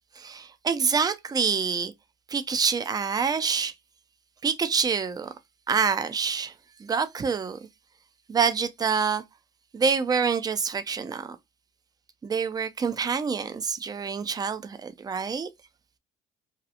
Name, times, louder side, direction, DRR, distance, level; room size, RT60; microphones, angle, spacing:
voice 1, 0.2-1.9 2.3-3.7 4.4-5.3 5.7-6.5 6.8-7.6 8.3-9.2 9.7-11.4 12.2-15.5, right 6 dB, 25° right, 0.4 m, -26 dB
2.8 x 2.3 x 2.4 m
cardioid pair, 110°, 17 cm